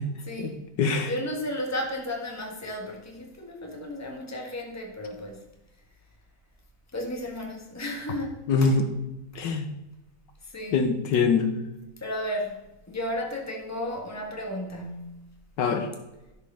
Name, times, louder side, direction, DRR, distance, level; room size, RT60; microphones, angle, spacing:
voice 1, 0.2-5.4 6.9-8.8 9.3-9.4 10.4-10.8 12.0-15.3, left 1 dB, 10° left, 1.5 m, -34 dB
voice 2, 0.8-1.1 8.5-8.9 9.4-9.7 10.7-11.5 15.6-15.9, left 5 dB, 75° left, 1.6 m, -23 dB
11.5 x 5.3 x 5.6 m
omnidirectional pair, 2.0 m